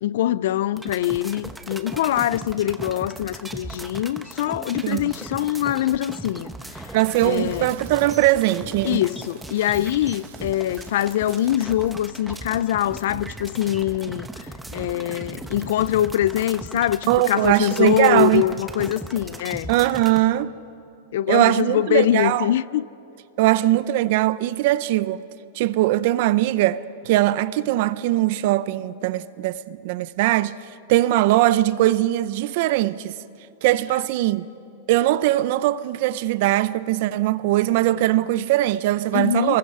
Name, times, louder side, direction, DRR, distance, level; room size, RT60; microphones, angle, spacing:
voice 1, 0.0-6.9 7.2-7.7 8.8-19.7 21.1-22.9 39.1-39.6, left 12 dB, 65° left, 0.4 m, -23 dB
sound 1, 0.7-20.2, right 2 dB, 5° right, 0.9 m, -37 dB
voice 2, 6.9-9.0 17.1-18.4 19.7-20.5 21.3-22.5 23.4-25.2 25.5-30.6 30.9-33.1 33.6-34.5 34.9-39.6, right 15 dB, 50° right, 0.7 m, -20 dB
Crackle, 6.9-12.2 12.5-12.7, right 8 dB, 70° right, 3.4 m, -49 dB
25.0 x 21.0 x 5.6 m
supercardioid pair, 155°, 0 cm